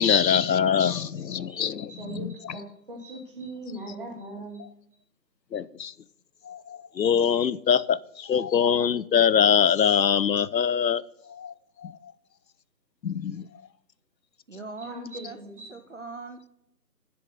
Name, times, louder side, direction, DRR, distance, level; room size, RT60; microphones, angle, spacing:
voice 1, 0.0-2.6 5.5-5.9 6.4-11.0 11.3-11.5 11.8-12.0 13.0-13.4, left 8 dB, 80° left, 0.6 m, -23 dB
voice 2, 1.9-4.6 14.8-15.7, right 1 dB, 30° right, 2.3 m, -40 dB
voice 3, 14.5-15.4 15.7-16.5, right 3 dB, 45° right, 0.7 m, -40 dB
7.7 x 6.8 x 6.6 m
figure-of-eight pair, 160°, 50 cm